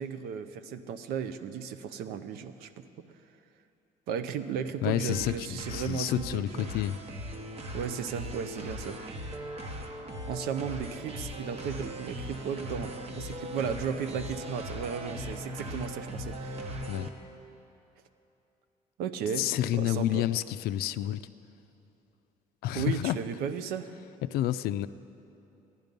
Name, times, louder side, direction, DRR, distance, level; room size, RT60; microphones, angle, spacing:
voice 1, 0.0-2.7 4.1-6.7 7.7-9.0 10.3-16.8 19.0-20.3 22.7-23.9, right 7 dB, 85° right, 11 dB, 0.6 m, -35 dB
voice 2, 4.8-7.0 16.9-17.1 19.4-21.2 22.6-23.2 24.2-24.9, left 13 dB, 80° left, 13 dB, 0.4 m, -29 dB
sound 1, 5.1-17.1, equal, 40° right, 1.1 m, -39 dB
15.0 x 11.0 x 5.3 m, 2.9 s
cardioid pair, 100°, 16 cm